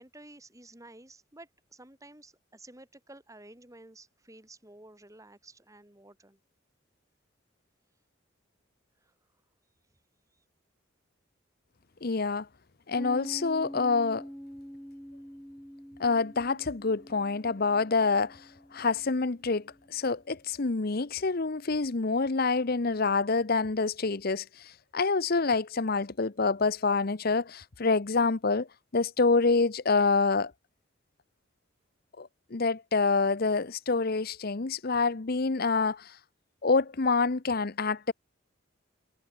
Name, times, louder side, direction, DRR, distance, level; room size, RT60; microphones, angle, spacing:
voice 1, 0.0-6.4 9.0-9.1, right 2 dB, 15° right, 3.8 m, -52 dB
voice 2, 12.0-12.5 12.9-14.2 16.0-18.4 18.7-28.7 28.9-30.5 32.2-36.2 36.6-38.1, left 4 dB, 50° left, 0.8 m, -27 dB
Piano, 12.9-20.2, equal, 5° left, 3.2 m, -46 dB
head